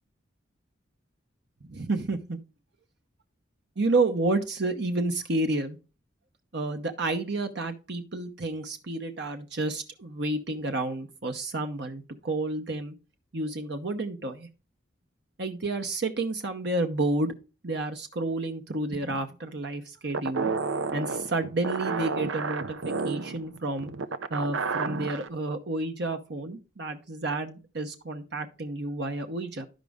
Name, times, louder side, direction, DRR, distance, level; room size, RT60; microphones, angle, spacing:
voice 1, 1.6-2.4 3.8-5.8 6.5-12.9 13.3-14.5 15.4-17.3 17.6-20.5 20.9-23.9 24.3-29.7, right 2 dB, 60° right, 6 dB, 0.9 m, -30 dB
sound 1, 20.1-25.3, right 4 dB, 90° right, 0.7 m, -31 dB
12.5 x 5.2 x 3.5 m, 0.32 s
head